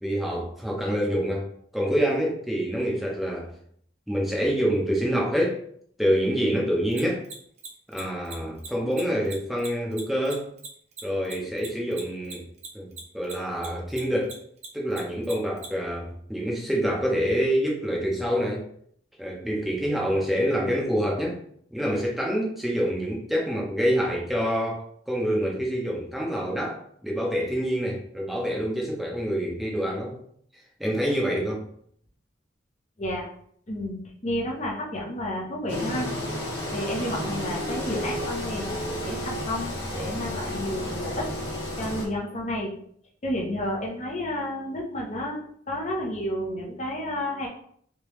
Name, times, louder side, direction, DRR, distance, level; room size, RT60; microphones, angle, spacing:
voice 1, 0.0-1.5 1.7-3.5 4.1-5.6 6.0-7.2 7.9-10.5 11.0-12.5 12.7-14.4 14.7-18.7 19.2-21.4 21.7-30.2 30.8-31.6, equal, ahead, -2 dB, 0.8 m, -26 dB
Mechanisms, 6.9-13.7 13.9-15.7, right 5 dB, 35° right, 0.7 m, -39 dB
voice 2, 33.7-36.1 36.7-41.3 41.8-42.7 43.2-47.5, left 1 dB, 40° left, -1 dB, 0.8 m, -31 dB
Engine, 35.7-42.1, equal, 80° left, 1.2 m, -32 dB
3.4 x 2.9 x 3.1 m, 0.64 s
head